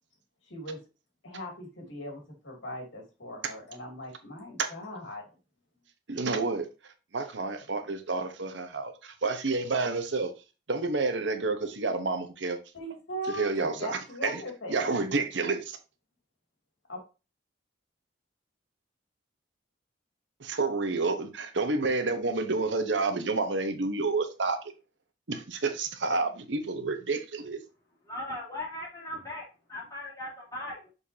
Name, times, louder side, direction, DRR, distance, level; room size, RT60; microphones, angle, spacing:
voice 1, 0.5-0.8 1.2-5.2 12.7-15.0 16.9-17.0, equal, 85° left, 2.7 m, -39 dB
voice 2, 6.1-6.7 7.1-10.3 10.7-12.6 13.3-14.4 14.7-15.8 20.4-24.6 25.3-27.6, right 3 dB, 70° right, 1.0 m, -29 dB
voice 3, 28.0-30.9, left 1 dB, 20° left, 3.1 m, -38 dB
6.5 x 5.4 x 2.7 m
head